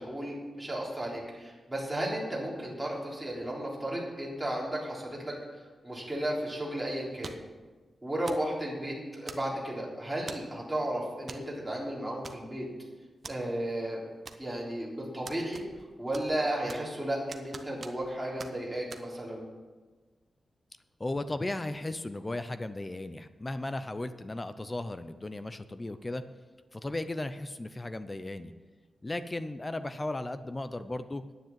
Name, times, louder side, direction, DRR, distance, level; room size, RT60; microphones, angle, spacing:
voice 1, 0.0-5.4 5.8-7.4 8.0-12.7 13.3-14.0 14.4-15.6 16.0-19.5, right 1 dB, 5° right, -5 dB, 3.7 m, -34 dB
sound 1, 7.2-7.6 8.3-8.5 9.3-9.7 10.3-10.6 11.3-11.5 11.7-11.8 12.2-12.7 13.2-13.4 14.3-14.7 15.3-15.9 16.1-17.0 17.3-18.1 18.4-18.5 18.9-19.0, right 4 dB, 45° right, 0.9 m, -45 dB
voice 2, 21.0-26.2 26.7-28.5 29.0-31.2, left 2 dB, 20° left, 11 dB, 0.5 m, -36 dB
10.5 x 9.4 x 7.5 m, 1.3 s
wide cardioid pair, 135°, 0 cm